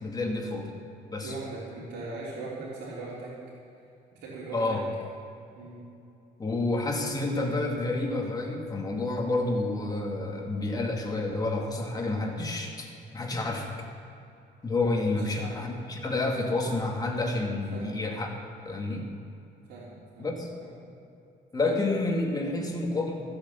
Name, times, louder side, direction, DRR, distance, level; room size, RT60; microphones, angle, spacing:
voice 1, 0.0-0.7 1.1-1.3 4.5-4.9 6.4-13.7 14.6-18.3 18.6-19.0 20.2-20.5 21.5-23.2, left 2 dB, 20° left, 1 dB, 2.1 m, -29 dB
voice 2, 1.2-3.3 4.2-4.8 5.5-5.8 15.2-15.6 17.7-17.9 19.7-20.3 20.6-20.7, right 3 dB, 80° right, -5 dB, 3.4 m, -39 dB
15.5 x 8.1 x 7.0 m, 2.7 s
cardioid pair, 110°, 17 cm